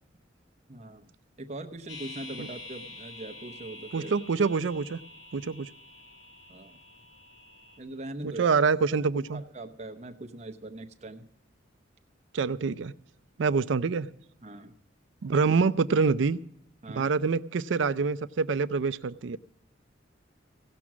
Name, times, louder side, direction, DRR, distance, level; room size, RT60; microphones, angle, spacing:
voice 1, 0.7-1.1 1.4-4.1 6.5-6.8 7.8-8.5 9.2-11.3 14.4-14.7 16.8-17.1, right 2 dB, 35° right, 6 dB, 0.8 m, -41 dB
sound 1, 1.9-7.8, left 2 dB, 75° left, 1.8 m, -47 dB
voice 2, 3.9-5.0 5.3-5.7 8.2-9.4 12.3-12.9 13.4-14.1 15.2-16.4 16.9-19.4, right 5 dB, 75° right, 14 dB, 0.4 m, -26 dB
16.5 x 6.1 x 7.3 m, 0.75 s
head